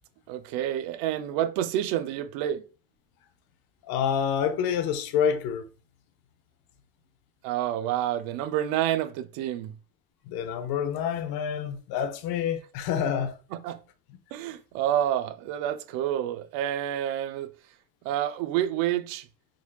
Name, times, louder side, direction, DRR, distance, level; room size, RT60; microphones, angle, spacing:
voice 1, 0.3-2.6 7.4-9.8 13.5-13.8 14.3-17.5 18.0-19.3, right 11 dB, 70° right, 0.6 m, -28 dB
voice 2, 3.9-5.6 10.3-13.4, left 8 dB, 60° left, 0.7 m, -27 dB
3.7 x 3.1 x 2.3 m
supercardioid pair, 100°, 41 cm